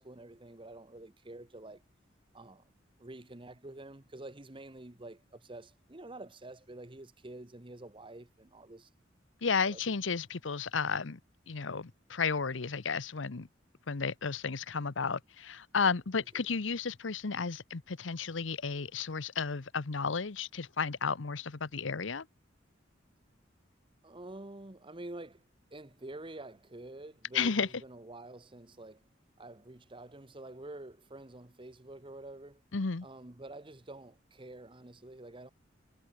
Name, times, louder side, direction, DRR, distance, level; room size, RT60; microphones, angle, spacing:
voice 1, 0.0-1.8 2.3-2.7 3.0-8.9 9.6-9.8 16.1-16.2 24.0-29.1 29.4-32.6 33.0-35.5, right 2 dB, 25° right, 1.3 m, -48 dB
voice 2, 9.4-11.2 11.5-13.5 13.9-22.3 27.3-27.7 32.7-33.1, left 5 dB, 90° left, 0.9 m, -33 dB
head